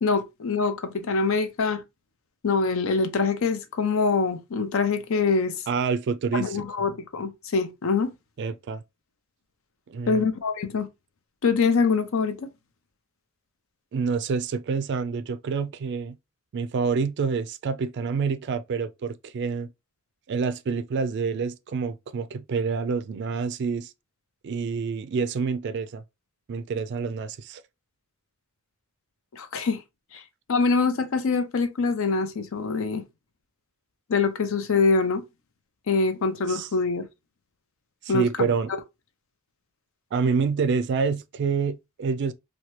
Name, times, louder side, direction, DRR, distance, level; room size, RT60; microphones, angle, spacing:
voice 1, 0.0-1.8 2.4-5.6 6.3-8.1 10.1-10.9 11.4-12.5 29.3-29.8 30.1-30.2 30.5-33.0 34.1-35.2 35.9-37.1 38.1-38.5, left 4 dB, 70° left, 0.5 m, -24 dB
voice 2, 5.7-6.6 8.4-8.8 9.9-10.3 13.9-16.1 16.5-19.7 20.3-23.9 24.4-26.0 26.5-27.6 36.5-36.7 38.1-38.7 40.1-42.3, right 5 dB, 55° right, 0.3 m, -27 dB
2.9 x 2.2 x 3.0 m
head